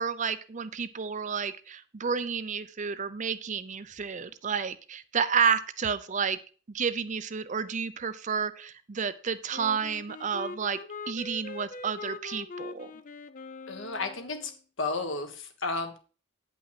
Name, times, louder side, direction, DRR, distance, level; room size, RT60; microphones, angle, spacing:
voice 1, 0.0-6.4 6.7-10.8 11.1-12.9, right 6 dB, 35° right, 13 dB, 0.5 m, -30 dB
Wind instrument woodwind instrument, 9.5-14.6, left 3 dB, 40° left, 0.5 m, -42 dB
voice 2, 13.7-14.5 14.8-16.0, left 3 dB, 65° left, 6 dB, 1.5 m, -32 dB
8.8 x 5.6 x 5.8 m, 0.38 s
head